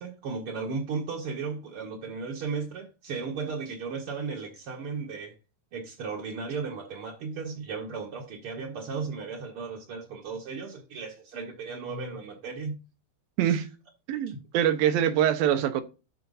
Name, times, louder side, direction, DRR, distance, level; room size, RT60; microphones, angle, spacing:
voice 1, 0.0-5.3 5.7-12.8 13.4-13.7 14.3-14.4, right 5 dB, 50° right, 1.7 m, -35 dB
voice 2, 14.1-15.8, right 10 dB, 75° right, 2.6 m, -24 dB
12.5 x 4.5 x 4.1 m
omnidirectional pair, 4.4 m